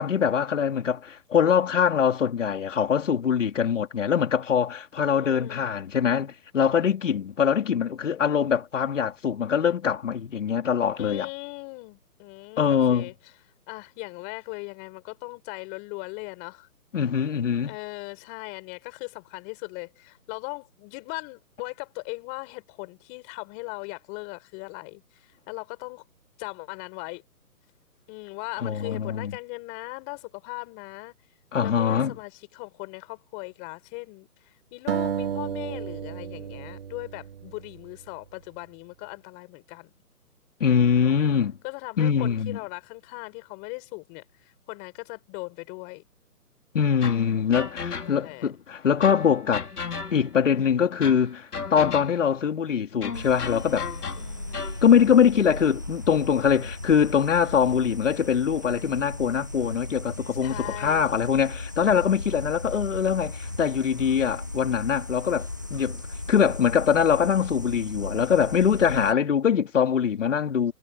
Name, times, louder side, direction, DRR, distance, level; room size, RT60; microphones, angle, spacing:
voice 1, 0.0-11.3 12.6-13.1 16.9-17.8 28.6-29.3 31.5-32.2 40.6-41.6 42.0-42.6 46.7-49.7 50.1-53.9 54.8-66.0 66.3-70.7, left 7 dB, 50° left, 4.2 m, -23 dB
voice 2, 5.0-5.7 11.0-13.1 13.7-16.7 17.6-26.0 26.4-27.2 28.1-31.1 31.6-39.9 41.0-41.1 41.6-46.0 47.2-48.5 54.2-54.7 60.4-61.2, left 30 dB, 15° left, 5.6 m, -39 dB
sound 1, 34.9-38.1, right 8 dB, 35° right, 2.0 m, -32 dB
sound 2, 47.0-48.4 49.0-50.5 51.0-52.4 53.0-54.9, left 5 dB, 70° left, 4.1 m, -35 dB
sound 3, 53.1-69.1, left 2 dB, 15° right, 0.6 m, -36 dB
hypercardioid pair, 165°, 47 cm